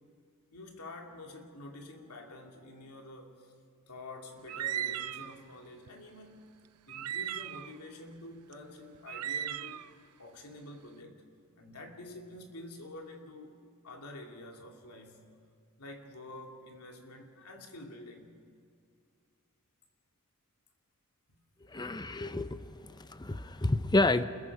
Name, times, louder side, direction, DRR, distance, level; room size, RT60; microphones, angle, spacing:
voice 1, 0.5-3.5 3.9-6.5 6.9-9.9 10.2-11.3 11.6-13.6 13.8-15.3 15.8-18.3 21.3-21.4, left 1 dB, 85° left, 2.7 m, -48 dB
sound 1, 4.5-5.3 5.9-6.0 6.9-7.7 8.5-8.6 8.9-9.9, right 10 dB, 90° right, 0.5 m, -36 dB
voice 2, 21.7-24.2, left 2 dB, 20° left, 0.7 m, -30 dB
29.0 x 21.5 x 4.9 m
head